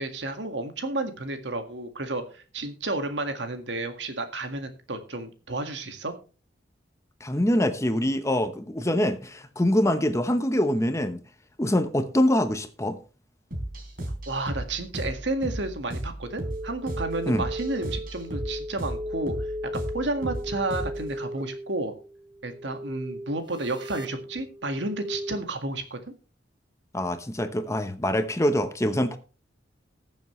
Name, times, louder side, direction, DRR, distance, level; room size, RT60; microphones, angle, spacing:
voice 1, 0.0-6.1 14.3-19.4 19.7-21.9 22.4-26.0, right 2 dB, 75° right, 1.9 m, -31 dB
voice 2, 7.2-11.2 11.6-13.0 17.3-17.4 26.9-29.2, left 1 dB, 15° left, 0.9 m, -24 dB
sound 1, 13.5-21.1, right 1 dB, 50° right, 3.8 m, -35 dB
sound 2, 16.2-25.4, equal, 25° right, 1.0 m, -36 dB
20.0 x 7.3 x 3.2 m
head